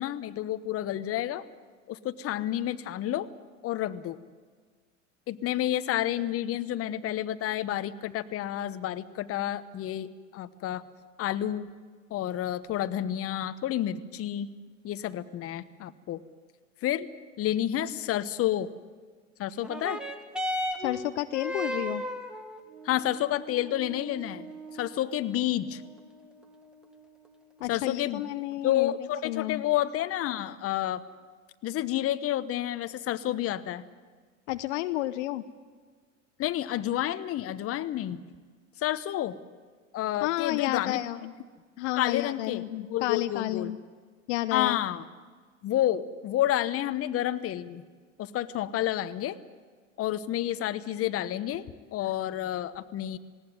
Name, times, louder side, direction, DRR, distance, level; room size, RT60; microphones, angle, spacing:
voice 1, 0.0-1.4 1.9-3.3 3.6-4.2 5.3-10.8 11.2-11.7 12.1-14.5 14.8-16.2 16.8-17.1 17.4-18.7 19.4-20.0 22.8-24.5 24.7-25.8 27.7-28.2 28.6-31.0 31.6-33.8 36.4-38.2 38.8-39.4 39.9-41.0 42.0-43.7 44.5-45.0 45.6-47.8 48.2-49.4 50.0-51.6 51.9-53.2, left 12 dB, 35° left, 12 dB, 1.1 m, -30 dB
sound 1, 19.5-28.5 29.4-29.5, equal, ahead, 1.9 m, -38 dB
voice 2, 20.8-22.0 27.6-28.9 29.2-29.6 34.5-35.4 40.2-41.3 41.8-43.8 44.3-44.8, left 16 dB, 65° left, 11 dB, 0.9 m, -31 dB
19.0 x 17.5 x 9.5 m, 1.5 s
hypercardioid pair, 90°, 38 cm